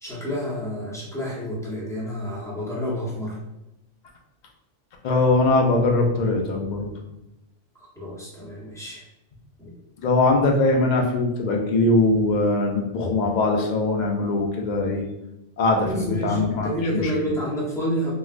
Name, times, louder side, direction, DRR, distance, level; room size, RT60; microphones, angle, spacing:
voice 1, 0.0-3.4 8.0-9.0 9.6-9.7 15.8-18.1, equal, 5° left, -7 dB, 0.7 m, -29 dB
voice 2, 5.0-6.9 10.0-15.0 15.6-17.3, left 2 dB, 60° left, 1 dB, 0.5 m, -21 dB
3.0 x 2.8 x 2.4 m, 0.93 s
omnidirectional pair, 1.3 m